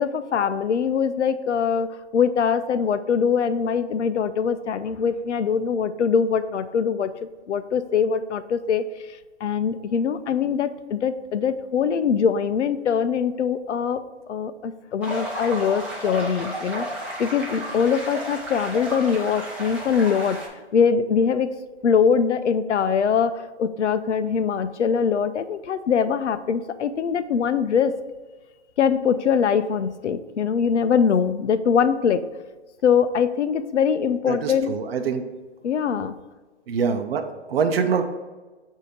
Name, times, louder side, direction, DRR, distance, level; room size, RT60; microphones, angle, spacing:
voice 1, 0.0-1.9 2.1-8.8 9.4-14.0 14.3-16.9 17.2-21.5 21.8-27.9 28.8-32.2 32.8-34.7 35.6-36.1, left 7 dB, 90° left, 12 dB, 0.6 m, -22 dB
sound 1, 15.0-20.5, right 1 dB, 5° right, 0.7 m, -33 dB
voice 2, 34.3-35.2 36.7-38.0, right 6 dB, 60° right, 7 dB, 0.7 m, -24 dB
8.1 x 2.8 x 5.1 m, 1.3 s
hypercardioid pair, 145°, 34 cm